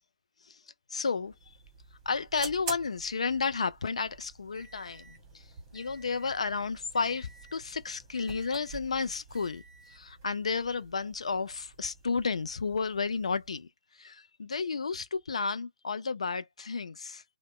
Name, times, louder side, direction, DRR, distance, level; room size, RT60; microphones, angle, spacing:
voice 1, 0.9-1.3 2.1-5.4 5.7-9.6 9.9-13.7 14.0-17.2, left 5 dB, 65° left, 0.4 m, -32 dB
sound 1, 1.2-13.6, right 4 dB, 20° right, 1.2 m, -48 dB
2.9 x 2.1 x 2.9 m
figure-of-eight pair, 130°, 4 cm